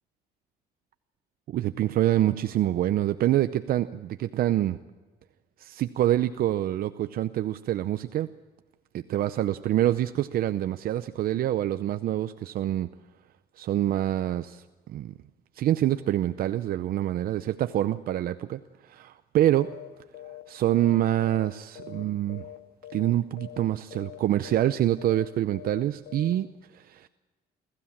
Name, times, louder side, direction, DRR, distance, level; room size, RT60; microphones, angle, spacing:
voice 1, 1.5-4.8 5.6-8.3 8.9-12.9 13.6-15.1 15.6-18.3 19.0-19.7 20.5-22.5 22.9-26.5 26.7-27.1, right 13 dB, 60° right, 11 dB, 0.7 m, -26 dB
sound 1, 19.6-19.9 20.1-20.4 20.7-22.0 22.3-22.6 22.8-23.1 23.4-23.6 23.9-24.2 24.4-24.7 25.0-25.3 25.5-25.8 26.1-26.3, left 12 dB, 75° left, 2.4 m, -43 dB
25.0 x 15.5 x 7.3 m, 1.3 s
cardioid pair, 110°, 17 cm